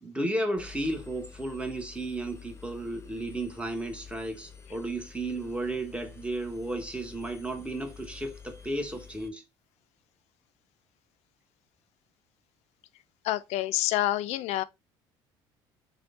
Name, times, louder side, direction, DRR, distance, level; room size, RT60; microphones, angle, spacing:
voice 1, 0.0-9.4, right 1 dB, 10° right, 1.0 m, -33 dB
Engine, 0.6-9.3, left 6 dB, 20° left, 0.7 m, -49 dB
voice 2, 13.2-14.6, left 14 dB, 65° left, 0.4 m, -27 dB
3.5 x 2.2 x 3.6 m
supercardioid pair, 75°, 12 cm